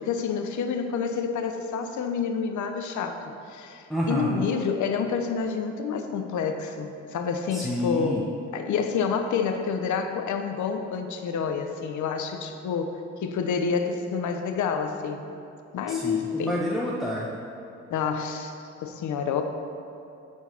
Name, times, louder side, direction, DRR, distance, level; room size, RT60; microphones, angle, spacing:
voice 1, 0.0-8.3 8.5-15.2 15.7-16.7 17.9-19.4, left 6 dB, 75° left, 6 dB, 1.0 m, -28 dB
voice 2, 3.9-4.3 7.5-8.2 15.9-17.3, equal, ahead, -5 dB, 1.2 m, -29 dB
12.5 x 4.7 x 5.9 m, 2.8 s
cardioid pair, 90°, 30 cm